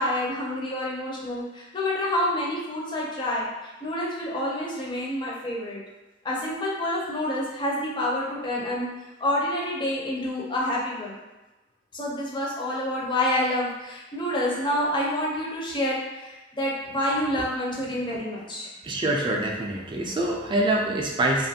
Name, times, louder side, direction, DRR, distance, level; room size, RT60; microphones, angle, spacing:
voice 1, 0.0-5.8 6.2-8.9 9.2-11.2 11.9-18.7, left 1 dB, 25° left, -4 dB, 0.5 m, -28 dB
voice 2, 18.8-21.5, right 1 dB, 25° right, -1 dB, 0.4 m, -25 dB
2.5 x 2.4 x 2.7 m, 1.1 s
head